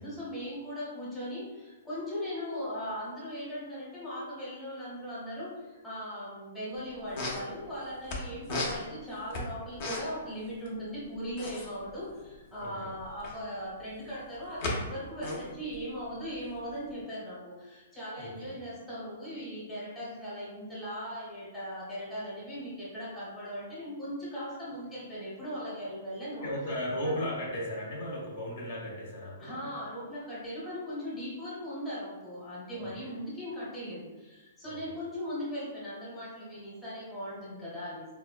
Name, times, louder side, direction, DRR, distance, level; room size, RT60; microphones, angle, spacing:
voice 1, 0.0-26.5 27.0-27.1 29.4-38.1, equal, 5° left, -9 dB, 0.9 m, -39 dB
sound 1, 6.7-6.8 7.0-8.2 8.4-10.3 10.5-10.7 10.9-13.5 14.0-14.8 15.1-16.9, left 2 dB, 45° left, 0.7 m, -36 dB
voice 2, 12.6-13.0 18.2-18.6 25.8-25.9 26.4-29.7 32.7-33.1 34.6-35.0, equal, 60° left, -3 dB, 1.0 m, -36 dB
4.0 x 2.2 x 2.3 m, 1.2 s
hypercardioid pair, 165°, 0 cm